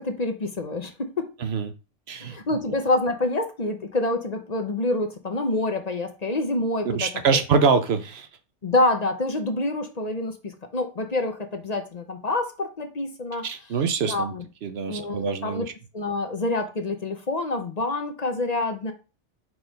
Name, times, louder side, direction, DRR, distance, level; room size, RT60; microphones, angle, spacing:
voice 1, 0.0-1.3 2.2-7.4 8.6-13.4 14.1-14.4 14.9-15.2 15.4-15.7 15.9-18.9, left 2 dB, 40° left, 0.8 m, -27 dB
voice 2, 1.4-1.7 2.1-2.4 6.8-8.3 13.4-14.3 14.6-15.7, right 5 dB, 65° right, 0.9 m, -24 dB
4.6 x 4.0 x 5.1 m
omnidirectional pair, 1.2 m